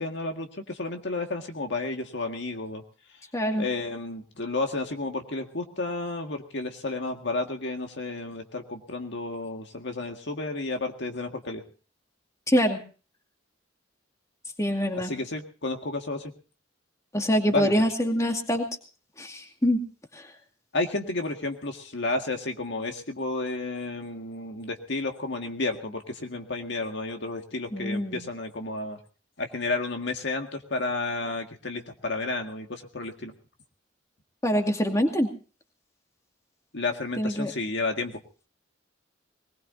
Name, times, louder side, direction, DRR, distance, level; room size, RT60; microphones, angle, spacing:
voice 1, 0.0-2.8 3.6-11.6 15.0-16.3 17.5-17.8 20.7-29.0 29.4-33.3 36.7-38.2, left 3 dB, 65° left, 4 dB, 1.9 m, -31 dB
voice 2, 3.3-3.7 12.5-12.8 14.6-15.1 17.1-18.7 19.2-19.8 20.1-20.3 27.7-28.2 34.4-35.3 37.2-37.5, equal, 15° left, 4 dB, 2.2 m, -25 dB
21.5 x 20.5 x 2.7 m, 0.36 s
head